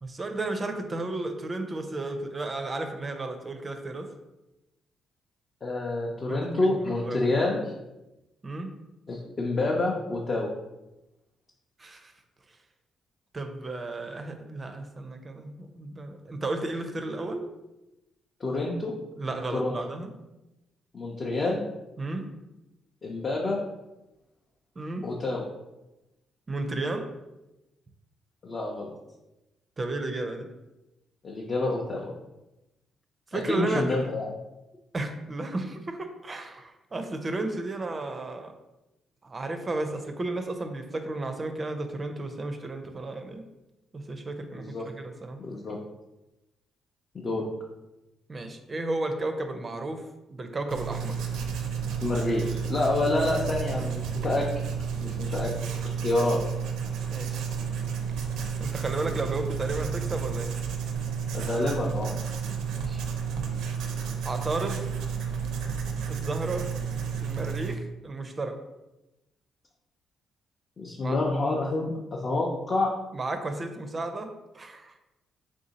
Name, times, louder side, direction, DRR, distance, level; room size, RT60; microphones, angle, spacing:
voice 1, 0.0-4.1 6.3-7.2 8.4-8.7 11.8-12.1 13.3-17.4 19.2-20.1 22.0-22.3 24.8-25.1 26.5-27.1 29.8-30.5 33.3-33.8 34.9-38.5 39.2-43.4 43.9-44.6 45.0-45.4 48.3-51.2 57.1-57.4 58.6-60.5 62.7-63.0 64.2-64.9 66.1-66.7 67.2-68.5 71.0-71.2 73.1-75.0, right 2 dB, 30° right, 6 dB, 0.4 m, -33 dB
voice 2, 5.6-7.7 9.1-10.5 18.4-18.9 19.5-19.8 20.9-21.6 23.0-23.6 25.0-25.4 28.4-28.9 31.2-32.1 33.3-34.3 44.5-44.9 45.4-45.8 47.1-47.5 52.0-54.5 55.0-55.5 56.0-56.4 61.3-62.1 70.8-72.9, left 2 dB, 40° left, -3 dB, 0.6 m, -28 dB
Writing, 50.7-67.7, right 6 dB, 90° right, 0.5 m, -31 dB
3.6 x 2.6 x 4.0 m, 0.97 s
cardioid pair, 90°, 0 cm